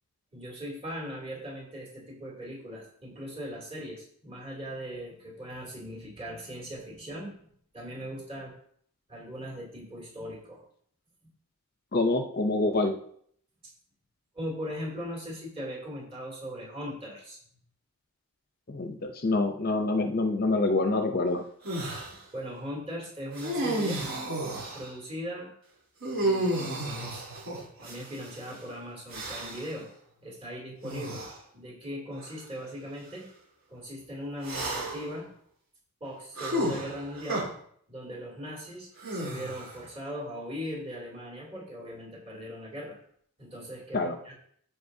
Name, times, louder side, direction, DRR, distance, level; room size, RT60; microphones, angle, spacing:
voice 1, 0.3-7.5 7.7-8.5 9.1-10.6 14.3-17.4 22.1-24.0 24.4-25.5 26.2-27.2 27.8-29.9 30.2-31.3 31.5-33.2 33.7-35.3 36.0-37.5 37.9-43.0 43.4-44.3, equal, 25° right, -2 dB, 2.8 m, -39 dB
voice 2, 11.9-13.0 18.7-21.4 43.9-44.2, left 2 dB, 40° left, 6 dB, 0.6 m, -26 dB
sound 1, 21.6-22.1 23.3-24.9 26.0-28.3 29.1-29.7 30.8-31.3 32.2-32.3 34.4-35.1 36.4-37.4 39.0-39.8, right 1 dB, 65° right, 3.4 m, -32 dB
14.5 x 5.1 x 2.7 m, 0.64 s
head